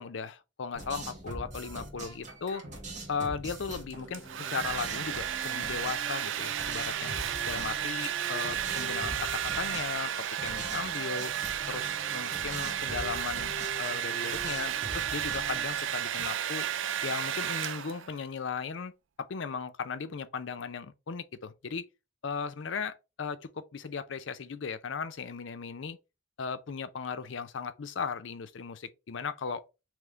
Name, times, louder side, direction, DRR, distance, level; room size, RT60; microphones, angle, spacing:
voice 1, 0.0-2.7 3.1-7.1 7.4-10.1 10.4-11.3 11.7-13.5 13.8-16.7 17.0-18.9 19.2-21.8 22.2-26.0 26.4-29.6, left 5 dB, 70° left, 0.5 m, -37 dB
sound 1, 0.7-16.2, right 1 dB, 40° right, 1.5 m, -43 dB
sound 2, 3.8-15.7, equal, ahead, 1.7 m, -48 dB
Domestic sounds home sounds, 3.9-18.2, right 10 dB, 75° right, 0.4 m, -33 dB
3.5 x 3.2 x 3.7 m
head